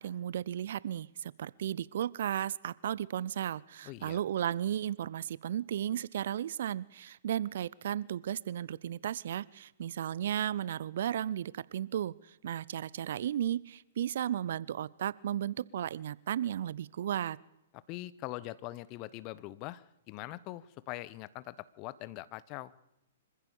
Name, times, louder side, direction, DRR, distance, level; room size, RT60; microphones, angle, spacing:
voice 1, 0.0-12.1 12.4-17.4, right 10 dB, 60° right, 22 dB, 0.6 m, -34 dB
voice 2, 3.8-4.2 17.7-22.7, left 17 dB, 35° left, 18 dB, 0.9 m, -43 dB
25.5 x 15.0 x 7.0 m, 0.90 s
figure-of-eight pair, 115°, 0 cm